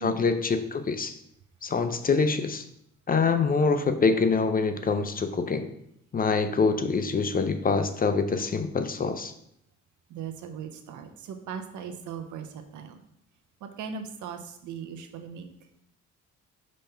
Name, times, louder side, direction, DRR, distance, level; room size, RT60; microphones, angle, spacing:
voice 1, 0.0-1.1 1.6-2.6 3.1-5.7 6.1-9.3, left 4 dB, 30° left, 9 dB, 0.5 m, -25 dB
voice 2, 10.1-12.4 12.7-12.9 13.6-15.4, right 7 dB, 80° right, 7 dB, 0.8 m, -38 dB
5.2 x 3.4 x 5.6 m, 0.72 s
cardioid pair, 90°, 30 cm